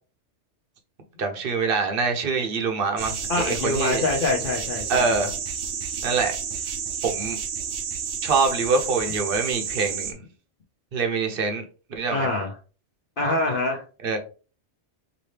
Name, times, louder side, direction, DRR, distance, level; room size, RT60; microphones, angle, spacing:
voice 1, 1.2-4.0 4.9-5.3 6.0-6.3 7.0-7.4 8.2-10.2 10.9-11.6 12.0-12.3 14.0-14.2, right 4 dB, 55° right, 0.9 m, -24 dB
sound 1, 3.0-10.1, right 7 dB, 80° right, 1.1 m, -31 dB
voice 2, 3.3-5.1 12.1-12.5 13.2-13.8, left 2 dB, 50° left, 0.9 m, -25 dB
5.0 x 2.7 x 3.2 m
omnidirectional pair, 1.2 m